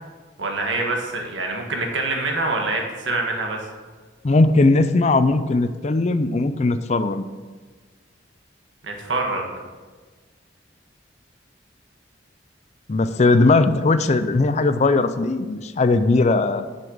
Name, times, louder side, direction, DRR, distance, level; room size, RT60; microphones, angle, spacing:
voice 1, 0.4-3.7 8.8-9.4, right 2 dB, 80° right, 2 dB, 1.6 m, -25 dB
voice 2, 4.2-7.2 12.9-16.7, left 3 dB, 35° left, 11 dB, 0.4 m, -19 dB
7.0 x 6.8 x 6.4 m, 1.4 s
head